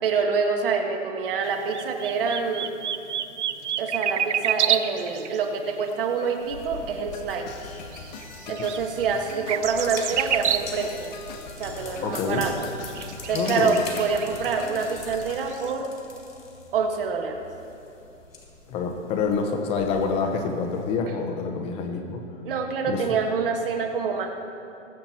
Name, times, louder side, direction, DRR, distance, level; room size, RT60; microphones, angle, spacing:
voice 1, 0.0-2.7 3.8-7.5 8.5-11.1 11.6-12.7 13.3-15.9 16.7-17.4 22.4-24.3, right 5 dB, 45° right, 4 dB, 1.6 m, -26 dB
sound 1, 1.4-5.9 6.3-6.4 7.0-7.1 7.9-11.0 11.3-11.4 12.1-15.7, right 9 dB, 65° right, 0.7 m, -29 dB
sound 2, 6.4-21.0, left 4 dB, 90° left, 3.4 m, -44 dB
sound 3, 7.1-15.5, left 5 dB, 35° left, 1.2 m, -42 dB
voice 2, 12.0-12.4 13.3-13.8 18.7-22.2 22.9-23.0, left 5 dB, 15° left, 4 dB, 0.8 m, -27 dB
21.5 x 7.7 x 4.3 m, 2.7 s
hypercardioid pair, 150°, 39 cm